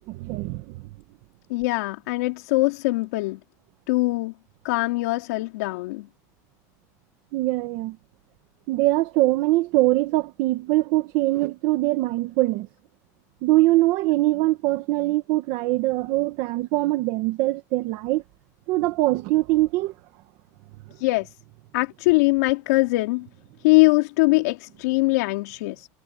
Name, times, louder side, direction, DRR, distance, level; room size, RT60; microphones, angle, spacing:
voice 1, 0.1-0.8 7.3-8.0 8.7-12.7 13.4-18.2 18.7-19.9, right 18 dB, 45° right, 1.3 m, -22 dB
voice 2, 1.5-3.4 3.9-4.3 4.6-6.1 21.0-21.3 21.7-23.3 23.6-25.9, left 23 dB, 70° left, 3.9 m, -22 dB
supercardioid pair, 180°, 9 cm